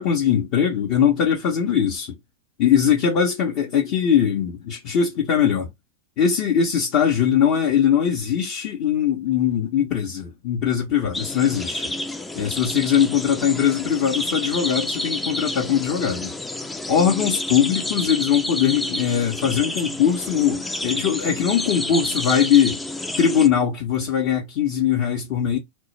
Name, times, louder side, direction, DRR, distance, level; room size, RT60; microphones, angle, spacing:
voice 1, 0.0-2.2 2.6-5.7 6.2-11.9 12.4-16.3 16.9-22.8 23.2-25.6, left 8 dB, 50° left, 0.7 m, -21 dB
sound 1, 11.1-23.5, left 1 dB, 10° left, 0.3 m, -29 dB
2.2 x 2.0 x 3.1 m
hypercardioid pair, 95°, 0 cm